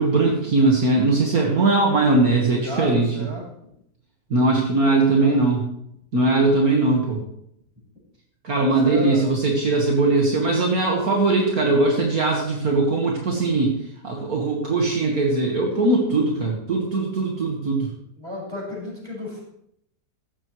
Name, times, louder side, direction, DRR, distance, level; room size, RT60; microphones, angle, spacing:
voice 1, 0.0-3.1 4.3-5.7 6.1-7.2 8.4-13.8 14.0-17.9, right 2 dB, 60° right, -1 dB, 2.2 m, -20 dB
voice 2, 2.6-3.7 4.8-5.5 8.5-9.3 18.2-19.4, equal, 15° right, -4 dB, 6.0 m, -32 dB
15.5 x 13.0 x 3.2 m, 0.74 s
omnidirectional pair, 1.8 m